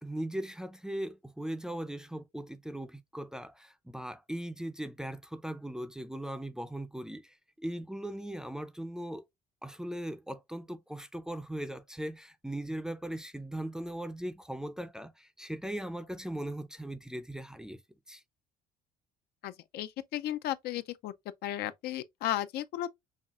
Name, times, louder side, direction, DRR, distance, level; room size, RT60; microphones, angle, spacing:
voice 1, 0.0-9.3 9.6-17.8 18.1-18.2, right 1 dB, 5° right, 0.4 m, -39 dB
voice 2, 19.4-21.1 21.4-22.9, left 13 dB, 70° left, 0.4 m, -34 dB
5.5 x 2.4 x 2.4 m
cardioid pair, 110°, 17 cm